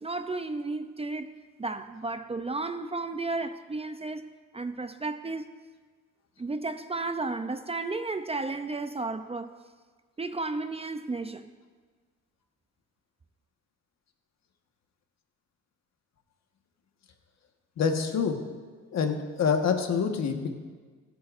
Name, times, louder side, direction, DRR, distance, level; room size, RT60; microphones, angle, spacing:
voice 1, 0.0-4.3 4.5-5.5 6.4-9.5 10.2-11.5, right 3 dB, 20° right, 0.6 m, -33 dB
voice 2, 17.8-18.4 18.9-20.5, left 6 dB, 60° left, 1.5 m, -26 dB
24.0 x 8.4 x 2.6 m
cardioid pair, 90°, 30 cm